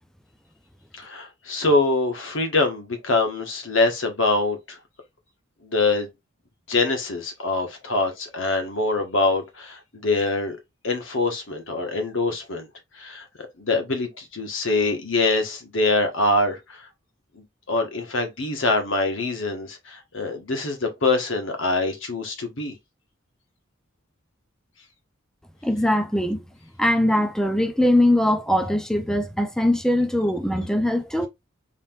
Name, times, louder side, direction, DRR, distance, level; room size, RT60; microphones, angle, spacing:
voice 1, 0.9-4.8 5.6-6.1 6.7-10.6 10.8-12.7 12.9-16.8 17.7-22.7, left 2 dB, 70° left, 1.3 m, -24 dB
voice 2, 25.6-26.4 26.8-31.3, left 1 dB, 5° left, 0.4 m, -21 dB
4.0 x 3.6 x 2.4 m
head